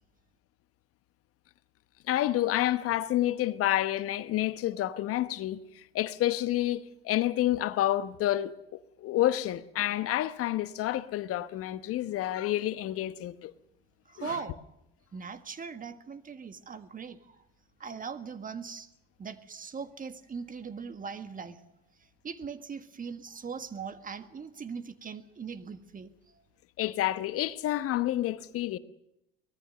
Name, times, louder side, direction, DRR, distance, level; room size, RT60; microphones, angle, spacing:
voice 1, 2.1-13.5 14.2-14.3 26.8-28.8, left 14 dB, 50° left, 1.1 m, -29 dB
voice 2, 14.0-14.6 15.1-17.4 17.8-18.9 19.2-21.7 22.0-26.4, right 5 dB, 25° right, 1.7 m, -40 dB
24.0 x 18.5 x 6.7 m
hypercardioid pair, 65°, 30 cm